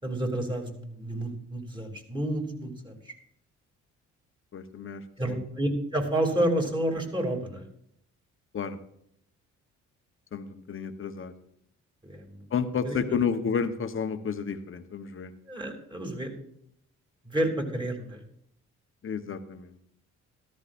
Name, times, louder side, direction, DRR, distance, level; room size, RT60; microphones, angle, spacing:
voice 1, 0.0-3.1 5.2-7.7 12.0-12.4 12.8-13.2 15.5-16.3 17.2-18.2, right 1 dB, 15° right, 2 dB, 3.0 m, -30 dB
voice 2, 4.5-5.4 8.5-8.8 10.3-11.3 12.5-15.3 19.0-19.8, left 6 dB, 45° left, 9 dB, 1.1 m, -31 dB
13.5 x 13.5 x 2.6 m, 0.72 s
cardioid pair, 90°, 30 cm